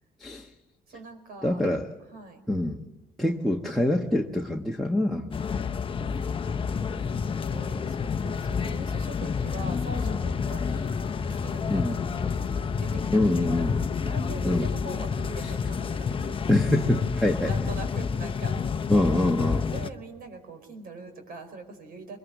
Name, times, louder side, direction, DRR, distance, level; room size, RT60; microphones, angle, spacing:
voice 1, 0.9-1.6 2.1-2.4 5.9-6.8 7.5-10.9 11.3-13.7 13.9-16.4 17.4-18.6 18.8-18.9 19.7-22.2, right 3 dB, 65° right, 7 dB, 5.2 m, -43 dB
voice 2, 1.4-1.8 2.5-2.8 3.2-5.3 11.7-12.0 13.1-13.8 14.4-14.7 15.4-15.5 16.5-17.5 18.9-19.7, left 1 dB, ahead, 4 dB, 1.4 m, -25 dB
sound 1, 5.3-19.9, left 5 dB, 30° left, 0.9 m, -29 dB
23.0 x 21.5 x 8.2 m, 0.98 s
cardioid pair, 110°, 17 cm